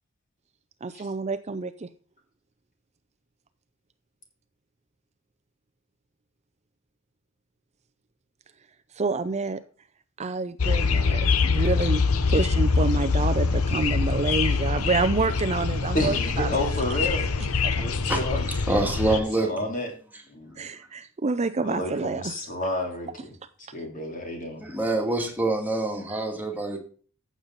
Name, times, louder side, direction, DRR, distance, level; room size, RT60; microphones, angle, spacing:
voice 1, 0.8-1.9 8.9-9.6 10.2-12.0 12.3-16.6 17.6-17.8 20.6-22.3, right 3 dB, 30° right, 11 dB, 0.5 m, -28 dB
sound 1, 10.6-19.2, left 4 dB, 90° left, 0.9 m, -24 dB
voice 2, 15.9-17.3 17.8-18.4 19.4-19.9 20.3-20.6 21.6-23.3 23.7-24.6, left 1 dB, 40° left, 2 dB, 3.4 m, -30 dB
voice 3, 18.7-19.7 20.1-20.2 24.6-26.8, right 2 dB, 10° right, 1 dB, 2.4 m, -26 dB
14.5 x 7.4 x 4.0 m, 0.43 s
head